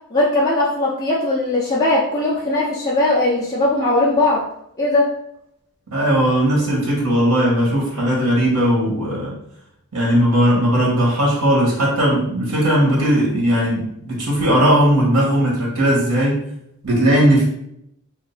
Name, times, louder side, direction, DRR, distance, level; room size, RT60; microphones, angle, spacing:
voice 1, 0.1-4.4 4.8-5.1, left 2 dB, 15° left, -8 dB, 0.6 m, -19 dB
voice 2, 5.9-9.4 9.9-16.4 16.8-17.4, equal, 75° right, -4 dB, 1.5 m, -17 dB
2.8 x 2.5 x 3.9 m, 0.74 s
head